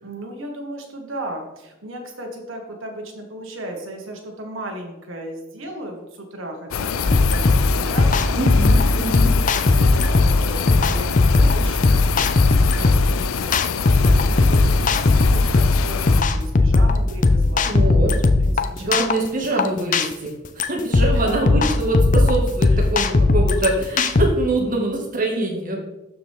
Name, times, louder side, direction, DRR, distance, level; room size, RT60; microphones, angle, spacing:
voice 1, 0.0-8.4 9.6-12.0 12.5-17.8 18.4-19.0 19.4-19.6 21.0-21.5 22.7-22.9, right 1 dB, 75° right, 2 dB, 1.8 m, -36 dB
sound 1, 6.7-16.2, left 7 dB, 90° left, 0.5 m, -26 dB
sound 2, 7.1-24.3, left 3 dB, 40° left, 0.5 m, -18 dB
voice 2, 8.4-9.3 17.6-18.1 18.8-25.8, right 2 dB, 40° right, -1 dB, 2.0 m, -24 dB
12.5 x 4.8 x 3.7 m, 0.99 s
head